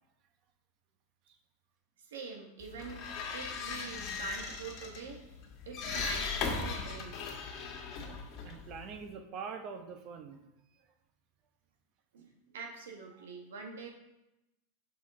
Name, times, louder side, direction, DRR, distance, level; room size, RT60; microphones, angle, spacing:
voice 1, 2.0-3.0 3.3-5.2 5.6-7.2 12.1-13.9, right 4 dB, 90° right, 2 dB, 1.5 m, -45 dB
sound 1, 2.6-9.1, left 4 dB, 45° left, 1.6 m, -38 dB
voice 2, 8.4-10.4, right 6 dB, 45° right, 6 dB, 0.9 m, -43 dB
6.2 x 6.1 x 3.7 m, 0.91 s
supercardioid pair, 125°, 0 cm